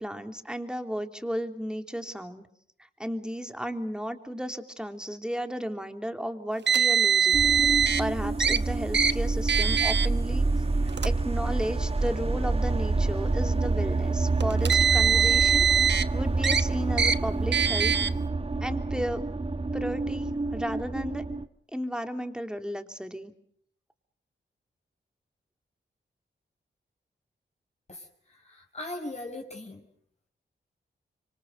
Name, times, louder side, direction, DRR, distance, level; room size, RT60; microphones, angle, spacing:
voice 1, 0.0-2.5 2.8-7.4 8.0-10.5 11.0-15.8 16.1-17.9 18.6-19.3 19.7-21.2 21.7-23.3, equal, 5° right, 7 dB, 3.3 m, -34 dB
Car, 6.7-8.0 8.4-8.6 8.9-9.1 9.5-10.1 10.9-11.1 12.0-12.1 14.4-16.0 16.4-16.6 17.0-17.2 17.5-18.1, right 7 dB, 65° right, 1.1 m, -22 dB
sound 1, 7.3-21.4, right 3 dB, 30° right, 1.3 m, -28 dB
voice 2, 27.9-29.8, left 1 dB, 35° left, 2 dB, 5.5 m, -40 dB
26.5 x 25.0 x 6.6 m, 0.66 s
cardioid pair, 55°, 20 cm